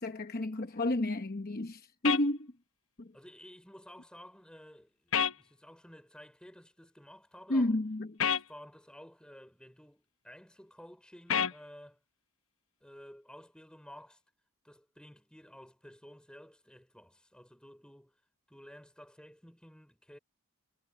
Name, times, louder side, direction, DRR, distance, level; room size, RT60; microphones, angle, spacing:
voice 1, 0.0-2.5 3.0-3.1 7.5-8.2, left 1 dB, 45° left, 0.9 m, -31 dB
sound 1, 2.0-2.2 5.1-5.4 8.2-8.4 11.3-11.6, left 8 dB, 70° left, 1.0 m, -28 dB
voice 2, 3.1-7.7 8.2-12.0 12.8-14.2 14.6-18.2 18.5-20.2, equal, 5° left, 5.2 m, -53 dB
head